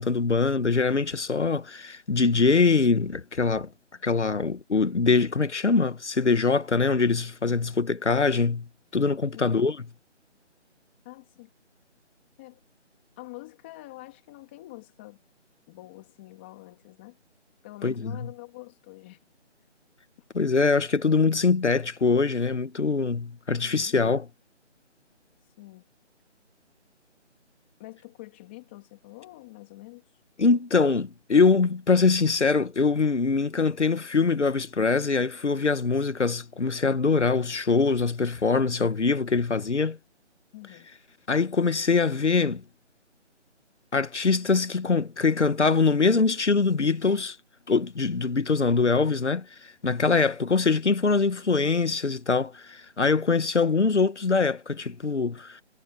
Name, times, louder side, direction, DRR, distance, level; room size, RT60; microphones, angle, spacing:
voice 1, 0.0-3.7 4.0-8.7 8.9-9.9 17.8-18.3 20.3-24.3 30.4-40.0 41.3-42.6 43.9-47.4 47.7-55.6, left 4 dB, 70° left, 1.9 m, -23 dB
voice 2, 11.0-11.5 12.4-12.6 13.2-15.2 15.7-17.2 17.6-19.2 23.6-24.0 25.6-25.9 27.8-30.0 40.5-40.9, left 20 dB, 10° left, 2.5 m, -46 dB
figure-of-eight pair, 170°, 36 cm